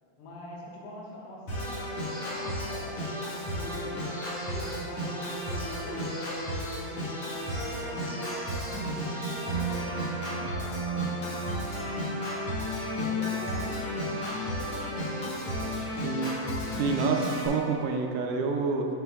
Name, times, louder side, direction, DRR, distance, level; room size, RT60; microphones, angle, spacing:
voice 1, 0.2-4.0 4.5-6.3 6.7-11.9 12.9-16.3, equal, 90° left, -5 dB, 3.4 m, -44 dB
Organ, 1.5-17.5, equal, 50° left, 1.9 m, -33 dB
voice 2, 16.0-16.4 16.8-18.9, right 4 dB, 80° right, 2 dB, 2.3 m, -28 dB
7.8 x 7.5 x 2.3 m, 2.6 s
omnidirectional pair, 4.7 m